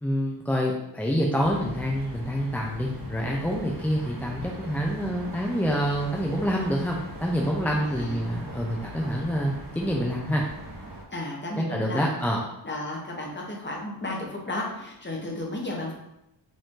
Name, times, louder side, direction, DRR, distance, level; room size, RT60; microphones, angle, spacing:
voice 1, 0.0-10.4 11.6-12.4, equal, 5° left, -2 dB, 0.4 m, -27 dB
sound 1, 1.4-11.0, right 1 dB, 45° right, 1.3 m, -40 dB
voice 2, 7.7-8.2 11.1-12.1 12.6-15.9, left 1 dB, 25° left, -1 dB, 1.0 m, -33 dB
5.2 x 2.6 x 3.7 m, 0.85 s
wide cardioid pair, 105°, 46 cm